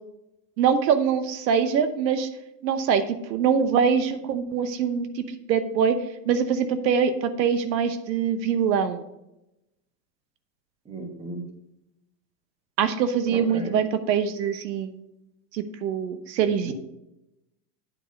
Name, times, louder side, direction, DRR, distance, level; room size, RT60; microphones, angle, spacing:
voice 1, 0.6-2.3 2.6-3.0 3.3-5.9 6.3-9.0 12.8-14.9 15.5-16.7, right 7 dB, 90° right, 10 dB, 1.0 m, -23 dB
voice 2, 10.9-11.4 13.3-13.7 16.6-16.7, right 2 dB, 10° right, 4 dB, 1.2 m, -34 dB
8.7 x 4.9 x 5.2 m, 0.88 s
supercardioid pair, 140°, 50 cm